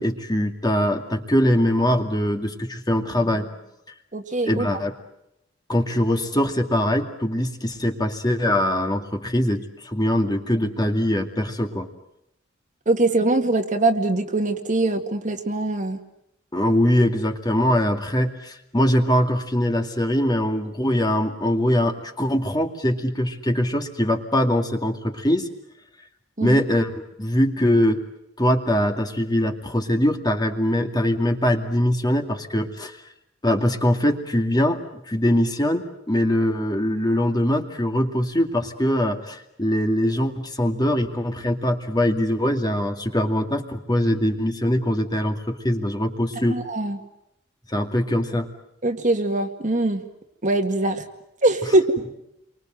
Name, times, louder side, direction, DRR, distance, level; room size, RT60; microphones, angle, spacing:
voice 1, 0.0-3.5 4.4-4.9 5.7-11.9 16.5-25.5 26.4-28.0 28.4-33.0 33.4-34.8 35.1-46.6 47.7-48.5, left 1 dB, 20° left, 4 dB, 2.4 m, -22 dB
voice 2, 4.1-4.8 12.9-16.0 26.4-26.6 46.5-47.0 48.8-50.0 50.4-51.0 51.4-52.0, right 2 dB, 40° right, 5 dB, 2.1 m, -22 dB
30.0 x 24.5 x 7.9 m, 0.83 s
head